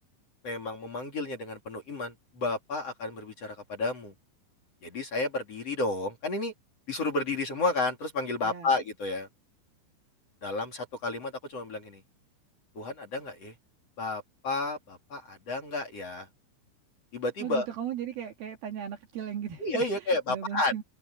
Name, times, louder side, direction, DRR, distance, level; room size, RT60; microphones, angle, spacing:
voice 1, 0.4-4.1 4.8-6.5 6.9-9.3 10.4-12.0 12.7-13.5 14.0-16.3 17.1-17.7 19.6-20.8, left 2 dB, 35° left, 3.3 m, -31 dB
voice 2, 17.4-20.8, right 9 dB, 60° right, 3.1 m, -37 dB
omnidirectional pair, 5.6 m